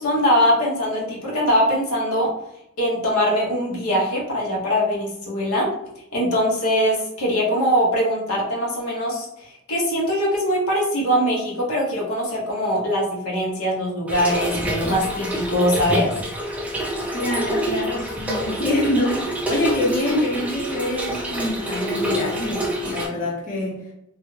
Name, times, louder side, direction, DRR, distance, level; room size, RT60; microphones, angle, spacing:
voice 1, 0.0-2.3 2.8-5.7 6.1-9.3 9.7-16.1, equal, 75° left, -3 dB, 0.7 m, -22 dB
Trickle dribble / Fill (with liquid), 14.1-23.1, equal, 5° right, 0.3 m, -27 dB
voice 2, 17.1-23.7, left 1 dB, 35° left, -4 dB, 0.6 m, -25 dB
2.3 x 2.0 x 3.0 m, 0.82 s
head